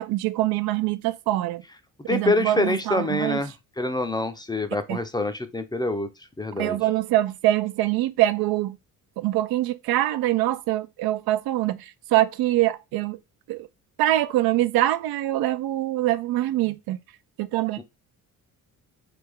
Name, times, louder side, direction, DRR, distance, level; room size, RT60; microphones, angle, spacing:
voice 1, 0.0-1.6 2.0-3.4 4.9-5.0 6.6-8.8 9.2-13.2 13.5-13.7 14.0-17.0 17.4-17.8, right 15 dB, 75° right, 0.5 m, -24 dB
voice 2, 2.1-6.1 6.4-6.8 17.8-17.9, left 2 dB, 10° left, 0.5 m, -26 dB
3.4 x 3.3 x 3.5 m
cardioid pair, 100°, 37 cm